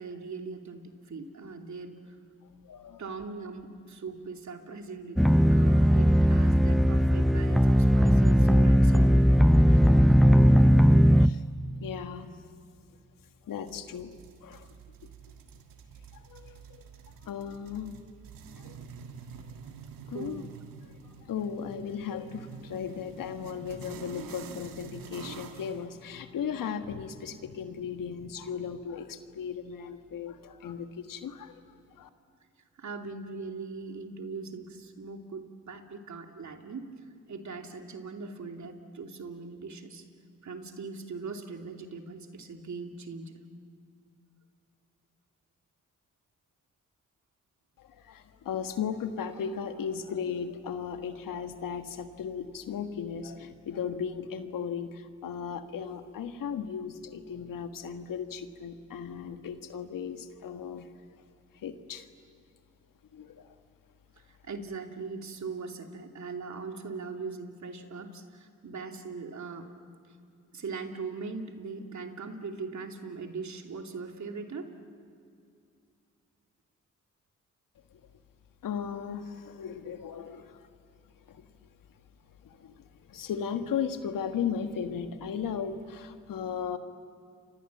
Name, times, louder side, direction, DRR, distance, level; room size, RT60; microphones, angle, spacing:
voice 1, 0.0-2.1 3.0-9.3 20.1-20.4 32.8-36.9 37.3-40.1 40.4-43.4 64.3-69.7 70.5-74.7, right 4 dB, 55° right, 4 dB, 2.8 m, -40 dB
voice 2, 2.6-3.0 9.7-10.1 10.4-10.6 11.0-11.4 11.8-12.3 13.5-14.1 14.4-14.7 15.0-15.1 16.1-16.6 17.2-17.9 18.5-18.9 20.1-20.4 21.0-32.1 47.8-60.9 61.5-62.1 63.1-63.5 77.9-78.0 78.6-80.6 81.3-81.4 82.4-86.8, left 7 dB, 75° left, 8 dB, 1.6 m, -36 dB
sound 1, 5.2-11.3, equal, ahead, 0.7 m, -19 dB
sound 2, 13.6-25.8, right 6 dB, 80° right, 1.7 m, -47 dB
30.0 x 25.0 x 7.4 m, 2.3 s
supercardioid pair, 45°, 33 cm